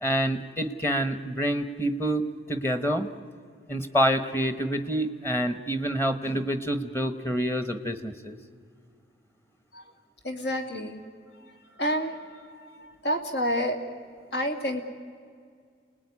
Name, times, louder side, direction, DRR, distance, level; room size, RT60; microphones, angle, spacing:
voice 1, 0.0-3.1 3.7-8.4, equal, 15° left, 10 dB, 1.1 m, -27 dB
voice 2, 10.2-11.0 11.6-13.8 14.3-14.8, equal, 70° left, 5 dB, 2.7 m, -29 dB
29.0 x 19.5 x 9.7 m, 2.1 s
head